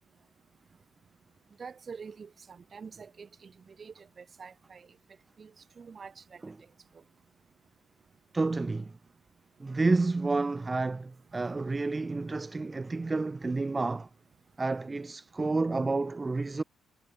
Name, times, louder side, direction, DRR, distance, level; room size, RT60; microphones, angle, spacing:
voice 1, 1.6-4.9 5.4-5.5 5.8-6.4, right 5 dB, 40° right, 1.6 m, -46 dB
voice 2, 8.3-8.9 9.6-14.1 14.6-16.6, right 3 dB, 25° right, 0.4 m, -30 dB
cardioid pair, 90°, 0 cm